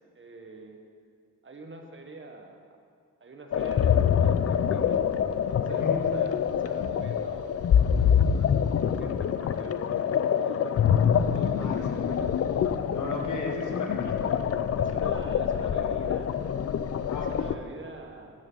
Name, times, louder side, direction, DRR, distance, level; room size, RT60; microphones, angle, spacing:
voice 1, 0.1-0.8 1.4-2.7 3.2-5.0 5.3-7.6 8.2-12.3 14.8-16.3 17.1-18.3, right 3 dB, 40° right, 3 dB, 1.4 m, -46 dB
sound 1, 3.5-17.6, left 8 dB, 50° left, 0.5 m, -25 dB
voice 2, 5.7-6.0 11.6-12.2 12.9-14.3 17.1-17.5, left 3 dB, 75° left, 1 dB, 1.8 m, -35 dB
14.0 x 9.0 x 4.0 m, 2.2 s
cardioid pair, 75°, 30 cm